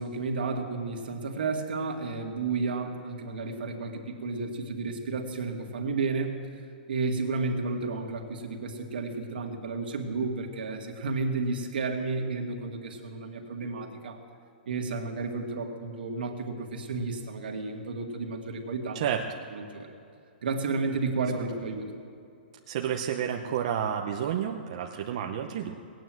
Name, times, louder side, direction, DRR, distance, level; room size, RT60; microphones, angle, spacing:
voice 1, 0.0-6.6 6.9-14.2 14.7-19.0 19.5-19.9 20.4-21.9, right 3 dB, 65° right, 3 dB, 2.1 m, -32 dB
voice 2, 22.7-25.8, right 9 dB, 30° right, 2 dB, 0.7 m, -30 dB
18.5 x 9.3 x 7.7 m, 2.5 s
hypercardioid pair, 180°, 6 cm